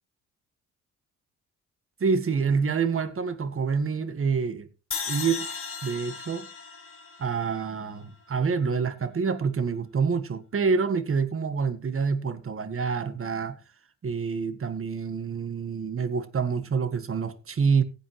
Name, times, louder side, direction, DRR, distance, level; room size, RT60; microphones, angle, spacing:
voice 1, 2.0-4.7 5.1-5.4 5.8-6.5 7.2-13.6 14.0-17.8, right 5 dB, 40° right, 1.7 m, -27 dB
sound 1, 4.9-8.1, left 6 dB, 40° left, 2.5 m, -36 dB
16.0 x 8.8 x 3.2 m
supercardioid pair, 65°, 32 cm